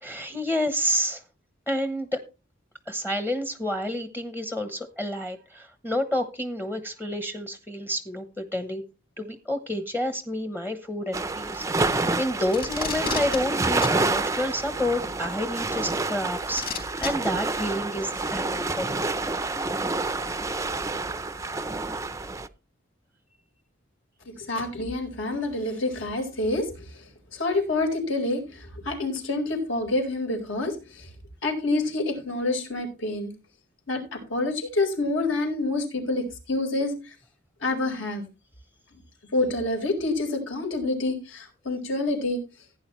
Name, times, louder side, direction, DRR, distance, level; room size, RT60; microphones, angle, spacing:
voice 1, 0.0-1.2 1.7-2.2 2.9-8.8 9.2-19.1, left 1 dB, 10° left, 8 dB, 0.9 m, -29 dB
sound 1, 11.1-22.5, right 3 dB, 15° right, 0.5 m, -28 dB
Packing tape duct tape, 12.5-13.4 13.8-14.0 15.3-15.4 16.5-17.1 18.2-18.3, left 6 dB, 50° left, 4.2 m, -31 dB
voice 2, 24.2-31.1 31.4-33.3 33.9-37.1 37.6-38.2 39.3-42.4, left 2 dB, 75° left, 4 dB, 4.4 m, -27 dB
16.0 x 9.5 x 3.1 m, 0.29 s
head